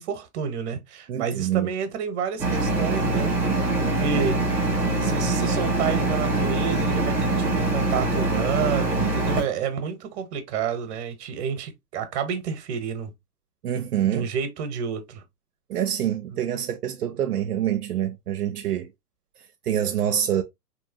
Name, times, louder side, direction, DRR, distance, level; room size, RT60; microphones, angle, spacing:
voice 1, 0.0-3.3 3.8-4.6 5.0-13.1 14.0-15.2 16.3-16.4, right 7 dB, 45° right, 1.0 m, -30 dB
voice 2, 1.1-1.7 13.6-14.3 15.7-18.9 19.7-20.4, right 10 dB, 75° right, 0.7 m, -26 dB
sound 1, 2.4-9.4, right 2 dB, 5° right, 0.4 m, -23 dB
3.6 x 2.9 x 2.7 m
hypercardioid pair, 115°, 47 cm